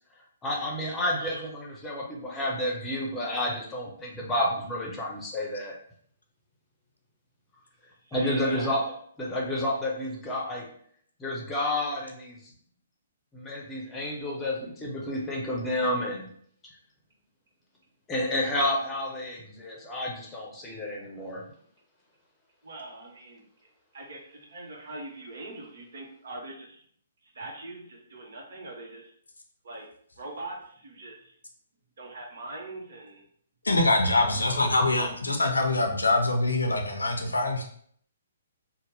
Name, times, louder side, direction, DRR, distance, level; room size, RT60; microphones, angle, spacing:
voice 1, 0.4-5.7 8.1-10.7 11.2-12.4 13.3-16.3 18.1-21.4, left 1 dB, 15° left, -2 dB, 0.7 m, -30 dB
voice 2, 8.1-8.7 22.6-23.4 23.9-26.8 27.3-29.1 29.6-29.9 30.2-31.3 32.0-33.2 34.1-34.7, right 2 dB, 60° right, 0 dB, 0.8 m, -42 dB
voice 3, 33.6-37.6, left 2 dB, 80° left, 3 dB, 0.5 m, -24 dB
2.8 x 2.0 x 3.2 m, 0.62 s
figure-of-eight pair, 125°, 0 cm